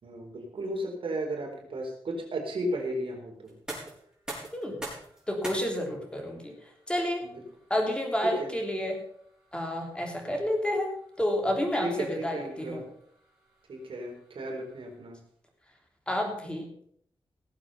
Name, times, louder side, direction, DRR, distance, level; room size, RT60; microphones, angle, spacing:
voice 1, 0.0-3.6 7.2-7.4 8.2-8.5 11.7-12.8 13.7-15.2, right 1 dB, 70° right, 0 dB, 4.4 m, -34 dB
sound 1, 3.4-15.2, right 1 dB, 10° right, 5.8 m, -47 dB
voice 2, 5.3-6.5 6.9-7.2 7.7-9.0 9.5-10.9 11.2-12.8 16.1-16.7, left 1 dB, 10° left, 2 dB, 3.3 m, -30 dB
18.5 x 7.8 x 5.7 m, 0.66 s
wide cardioid pair, 135°, 9 cm